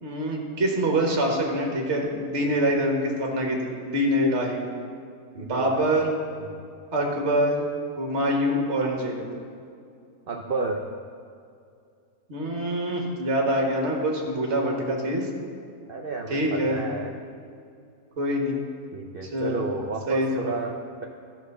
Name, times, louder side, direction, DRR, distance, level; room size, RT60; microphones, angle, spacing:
voice 1, 0.0-4.6 5.4-6.1 6.9-7.7 8.0-9.3 12.3-15.3 16.3-16.8 18.2-18.6 19.3-19.6 20.1-20.6, equal, 45° right, 0 dB, 1.7 m, -25 dB
voice 2, 5.3-5.9 6.4-6.6 10.3-10.9 15.9-17.2 18.9-21.1, right 3 dB, 70° right, 2 dB, 0.5 m, -31 dB
13.5 x 4.5 x 6.6 m, 2.4 s
omnidirectional pair, 1.8 m